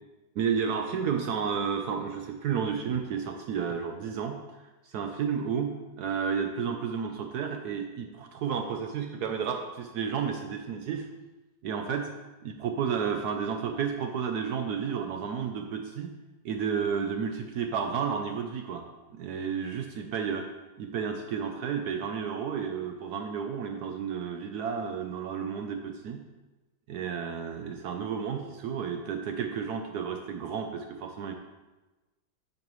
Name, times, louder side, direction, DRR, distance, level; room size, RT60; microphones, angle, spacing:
voice 1, 0.4-11.1 11.6-12.1 12.4-16.1 16.4-18.8 19.1-20.5 20.8-26.2 26.9-31.3, right 7 dB, 80° right, 5 dB, 0.9 m, -32 dB
8.6 x 6.5 x 3.1 m, 1.1 s
omnidirectional pair, 2.2 m